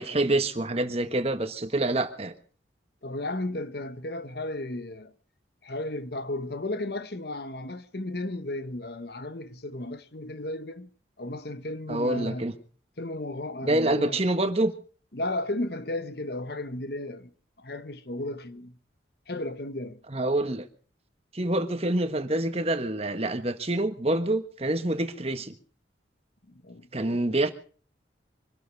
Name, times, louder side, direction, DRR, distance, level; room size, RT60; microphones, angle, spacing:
voice 1, 0.0-2.3 11.9-12.5 13.6-14.7 20.1-20.7 21.3-25.5 26.9-27.5, right 1 dB, 35° right, 1.4 m, -26 dB
voice 2, 3.0-5.1 5.6-10.9 11.2-12.5 13.0-14.2 15.1-17.3 17.6-18.8 19.3-20.0 26.5-27.3, left 1 dB, 55° left, 1.2 m, -34 dB
24.5 x 12.5 x 4.7 m
head